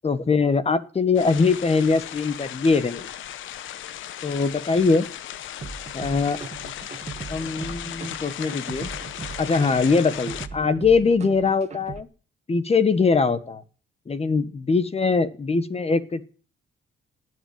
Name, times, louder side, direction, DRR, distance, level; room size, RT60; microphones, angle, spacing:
voice 1, 0.0-3.1 4.2-5.1 5.9-6.4 7.3-8.9 9.4-12.1 12.5-13.6 14.1-16.2, left 4 dB, 30° left, 13 dB, 1.5 m, -22 dB
sound 1, 1.2-10.5, left 11 dB, 80° left, 1.1 m, -36 dB
sound 2, 5.6-12.0, right 5 dB, 35° right, 1.7 m, -38 dB
19.0 x 7.9 x 9.5 m, 0.39 s
cardioid pair, 90°, 20 cm